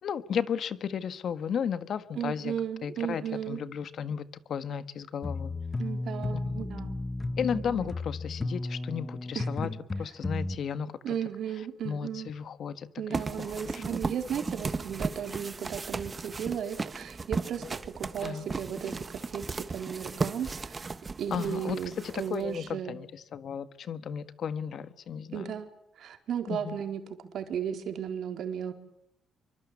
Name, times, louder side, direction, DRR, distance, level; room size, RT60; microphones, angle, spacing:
voice 1, 0.0-2.5 2.8-5.5 6.3-6.5 7.4-9.7 10.0-10.9 11.8-13.8 18.2-18.5 21.3-25.5 26.5-26.8, left 7 dB, 60° left, 13 dB, 1.6 m, -34 dB
voice 2, 2.2-3.6 5.8-7.0 7.5-7.9 9.3-9.5 11.0-12.3 13.0-20.8 21.2-23.0 25.3-25.7 26.0-27.0 27.3-28.7, right 8 dB, 70° right, 6 dB, 4.2 m, -35 dB
sound 1, 5.2-10.6, left 2 dB, 25° left, 1.2 m, -34 dB
Fumbling with a Box, 13.1-22.7, right 4 dB, 30° right, 1.5 m, -36 dB
26.0 x 24.0 x 8.6 m, 0.79 s
cardioid pair, 90°, 0 cm